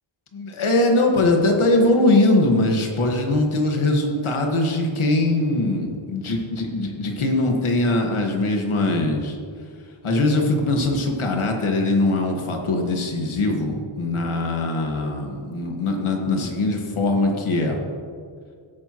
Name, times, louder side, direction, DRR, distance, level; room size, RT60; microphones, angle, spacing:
voice 1, 0.3-9.4 10.0-17.8, left 2 dB, 75° left, 2 dB, 1.7 m, -21 dB
16.5 x 9.0 x 3.0 m, 2.1 s
wide cardioid pair, 160°, 49 cm